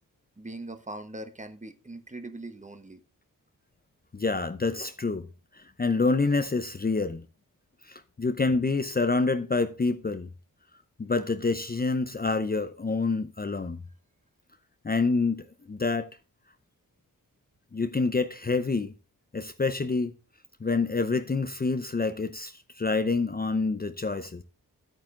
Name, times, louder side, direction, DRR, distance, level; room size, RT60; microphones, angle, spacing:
voice 1, 0.4-3.0, right 2 dB, 20° right, 1.1 m, -41 dB
voice 2, 4.1-5.3 5.5-7.2 7.8-10.3 11.0-13.8 14.8-16.1 17.7-18.9 19.3-20.1 20.6-24.4, left 3 dB, 25° left, 0.7 m, -27 dB
10.0 x 8.9 x 3.7 m
wide cardioid pair, 120°, 35 cm